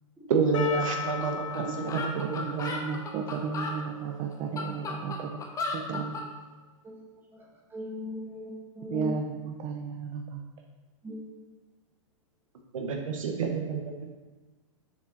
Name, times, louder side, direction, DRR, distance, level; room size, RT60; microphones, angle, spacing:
voice 1, 0.3-2.6 12.7-14.1, right 4 dB, 75° right, 2 dB, 1.2 m, -29 dB
Percussion, 0.5-5.5, left 7 dB, 70° left, 0.6 m, -39 dB
sound 1, 1.2-1.3 1.5-1.6 1.9-3.8 4.3-6.3, left 3 dB, 20° left, 0.9 m, -34 dB
voice 2, 1.6-5.4 5.7-6.3 8.9-10.4, right 6 dB, 30° right, 2 dB, 0.5 m, -33 dB
voice 3, 7.3-8.5 8.8-9.1 11.0-11.3, left 2 dB, 10° right, -4 dB, 1.8 m, -39 dB
6.7 x 5.0 x 4.0 m, 1.3 s
hypercardioid pair, 125°, 17 cm